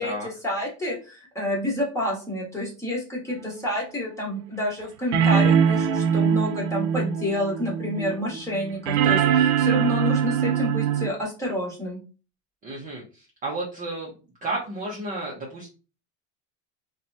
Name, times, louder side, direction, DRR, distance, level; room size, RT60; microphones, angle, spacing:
voice 1, 0.0-12.0, left 1 dB, 10° left, -4 dB, 1.2 m, -29 dB
sound 1, 3.5-3.6 5.1-11.1, right 8 dB, 70° right, 0.5 m, -22 dB
voice 2, 12.6-14.1 14.4-15.7, right 2 dB, 25° right, -3 dB, 0.6 m, -32 dB
2.9 x 2.2 x 2.6 m, 0.34 s
supercardioid pair, 140°, 36 cm